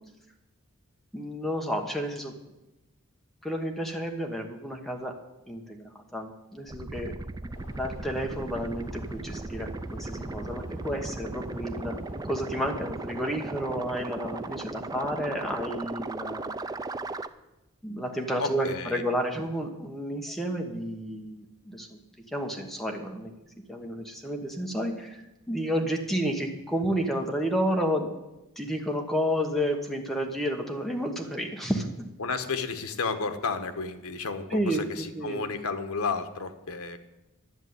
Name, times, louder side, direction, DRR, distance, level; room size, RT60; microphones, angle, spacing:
voice 1, 1.1-2.3 3.4-5.1 5.5-7.1 7.4-12.0 12.2-16.5 17.8-22.0 22.3-23.3 23.7-28.1 28.6-31.9 34.5-35.4, equal, ahead, 2 dB, 1.1 m, -31 dB
sound 1, 6.7-17.3, right 2 dB, 15° right, 0.3 m, -37 dB
sound 2, 7.5-14.6, equal, 55° left, 2.7 m, -49 dB
voice 2, 18.4-19.0 32.2-37.0, left 4 dB, 80° left, 8 dB, 1.1 m, -32 dB
11.0 x 7.3 x 9.4 m, 0.99 s
head